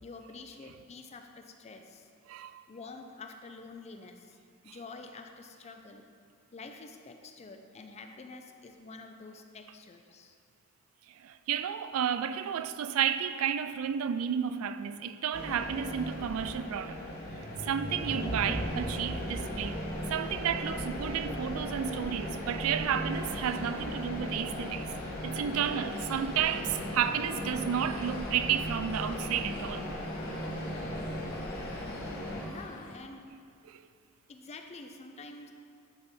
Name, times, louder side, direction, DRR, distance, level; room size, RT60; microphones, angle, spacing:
voice 1, 0.0-2.1 2.7-4.4 4.6-6.1 6.5-10.4 32.4-33.2 34.3-35.5, left 3 dB, 30° left, 0.4 m, -47 dB
voice 2, 2.3-2.6 11.2-17.0 17.6-19.8 20.1-24.9 25.2-29.8 33.7-33.8, right 8 dB, 80° right, 0.3 m, -32 dB
sound 1, 15.3-32.4, equal, 50° left, 1.2 m, -37 dB
sound 2, 23.1-33.0, left 3 dB, 90° left, 0.7 m, -50 dB
10.5 x 3.6 x 4.4 m
head